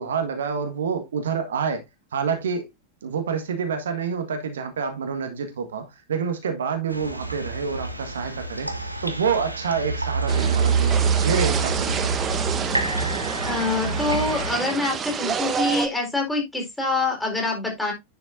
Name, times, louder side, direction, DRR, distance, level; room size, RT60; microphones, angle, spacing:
voice 1, 0.0-1.8 2.1-2.7 3.0-12.8, right 6 dB, 65° right, 1.5 m, -28 dB
sound 1, 6.9-14.5, right 4 dB, 85° right, 1.1 m, -26 dB
sound 2, 10.3-15.9, right 7 dB, 25° right, 1.1 m, -28 dB
voice 2, 13.4-17.9, left 2 dB, 5° left, 4.3 m, -25 dB
10.0 x 7.0 x 2.6 m
figure-of-eight pair, 90°, 0 cm